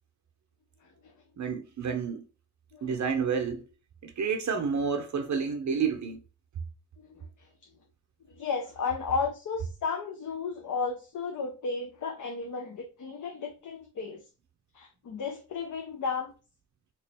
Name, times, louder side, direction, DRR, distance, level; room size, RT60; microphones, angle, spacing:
voice 1, 1.4-2.2 2.8-3.6 4.0-6.2, right 6 dB, 50° right, 0.7 m, -29 dB
voice 2, 7.0-7.5 8.3-14.2 14.7-16.3, left 5 dB, 55° left, 0.7 m, -34 dB
3.5 x 2.9 x 3.4 m
cardioid pair, 100°, 37 cm